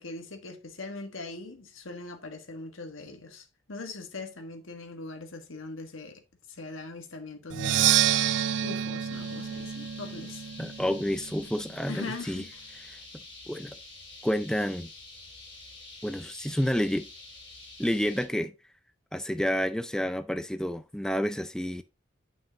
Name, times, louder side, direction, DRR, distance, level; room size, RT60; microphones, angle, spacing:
voice 1, 0.0-6.2 6.5-8.2 8.6-10.5 11.9-12.7, left 3 dB, 90° left, 1.6 m, -41 dB
Percussion, 7.5-11.3, right 11 dB, 65° right, 0.3 m, -28 dB
sound 1, 9.1-18.3, left 2 dB, 25° left, 2.9 m, -48 dB
voice 2, 10.6-12.4 13.5-13.8 14.2-14.9 16.0-17.1 17.8-18.5 19.1-21.8, equal, 5° left, 0.4 m, -29 dB
10.0 x 5.9 x 2.9 m
head